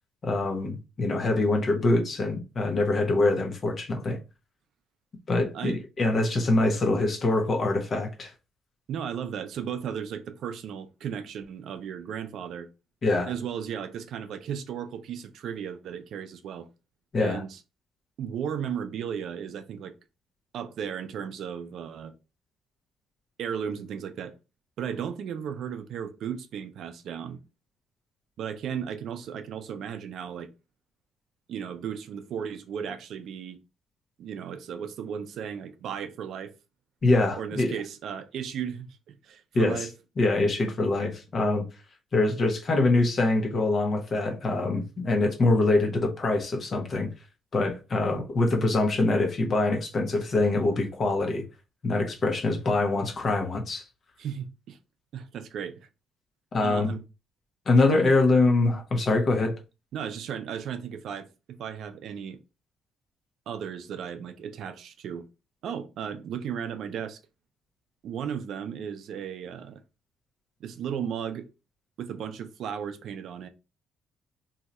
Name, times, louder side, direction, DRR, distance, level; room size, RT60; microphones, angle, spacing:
voice 1, 0.2-4.2 5.3-8.3 13.0-13.3 17.1-17.4 37.0-37.7 39.5-39.8 40.2-41.6 42.1-47.1 47.5-51.4 51.8-53.8 56.5-56.9 57.7-59.6, left 2 dB, 35° left, 0.9 m, -24 dB
voice 2, 8.9-12.7 13.3-16.7 17.2-17.6 18.2-19.9 20.5-22.1 23.4-24.3 24.8-27.4 28.4-30.5 31.5-33.6 34.2-36.5 37.3-39.9 54.2-54.8 55.1-55.9 56.6-57.0 57.9-58.1 59.9-62.4 63.5-65.3 65.6-67.2 68.0-69.8 70.6-71.5 72.0-73.5, right 8 dB, 60° right, 0.4 m, -35 dB
2.7 x 2.3 x 4.1 m
cardioid pair, 135°, 0 cm